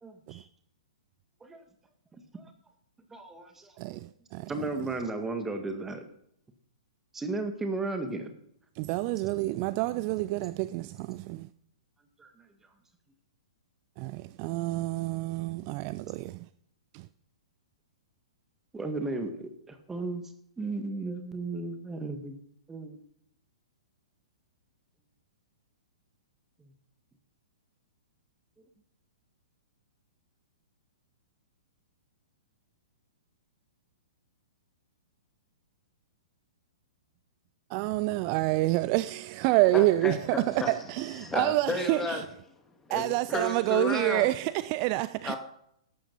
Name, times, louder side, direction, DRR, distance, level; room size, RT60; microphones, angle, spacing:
voice 1, 0.0-0.5 1.4-1.6 2.1-2.5 3.1-3.7 4.5-6.0 7.1-8.3 12.2-12.5 18.7-20.3 20.6-22.4 22.7-23.0 26.6-26.7, right 3 dB, 10° right, 1.8 m, -35 dB
voice 2, 8.8-11.4 14.0-16.3 37.7-40.1 40.7-42.0 42.9-45.4, right 18 dB, 35° right, 0.4 m, -27 dB
voice 3, 39.6-42.3 42.9-44.3 45.2-45.4, left 3 dB, 10° left, 2.2 m, -33 dB
14.0 x 12.0 x 4.1 m
figure-of-eight pair, 110°, 3 cm